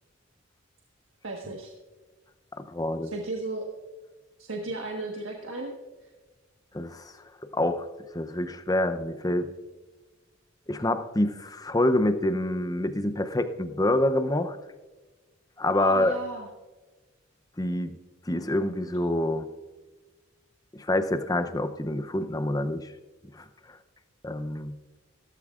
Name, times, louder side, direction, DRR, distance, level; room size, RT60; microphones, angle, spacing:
voice 1, 1.2-1.7 3.0-3.7 4.4-5.7 6.0-6.1 15.7-16.5, right 2 dB, 80° right, 0 dB, 1.4 m, -35 dB
voice 2, 2.6-3.1 6.7-7.1 7.5-7.9 8.1-9.5 10.7-14.6 15.6-16.1 17.6-18.0 18.3-19.5 20.8-22.9 23.3-23.4 24.2-24.8, left 1 dB, 20° left, 9 dB, 0.7 m, -26 dB
15.5 x 14.0 x 2.5 m, 1.2 s
head